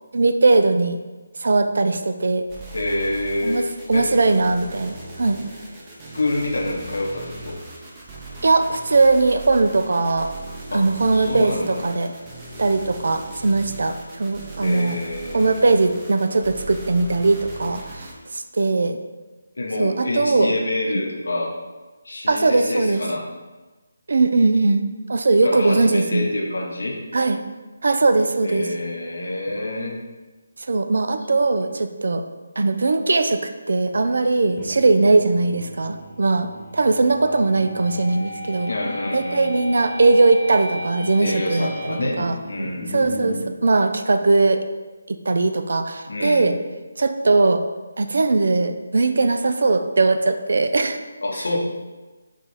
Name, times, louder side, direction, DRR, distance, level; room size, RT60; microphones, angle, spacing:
voice 1, 0.1-1.0 1.4-2.4 3.4-5.4 8.4-10.3 10.7-12.1 12.6-15.0 15.3-19.0 19.8-20.6 22.3-23.0 24.1-24.8 25.1-26.3 27.1-27.4 27.8-28.7 30.6-32.2 32.6-38.7 39.1-42.4 42.9-44.6 45.1-46.5 47.0-47.6 48.0-51.0, right 3 dB, 65° right, 8 dB, 0.4 m, -20 dB
sound 1, 2.5-18.1, right 2 dB, 20° right, 0.7 m, -39 dB
voice 2, 2.7-3.6 3.9-4.1 6.1-7.6 10.7-10.8 11.1-11.8 14.6-15.6 19.6-21.5 22.0-23.2 25.4-27.0 28.4-30.0 38.7-39.5 41.2-42.9 46.1-46.5 51.2-51.6, left 2 dB, 75° left, -2 dB, 0.9 m, -27 dB
sound 2, 34.4-43.5, left 1 dB, 15° left, 0.7 m, -35 dB
4.9 x 2.5 x 4.2 m, 1.2 s
figure-of-eight pair, 160°, 0 cm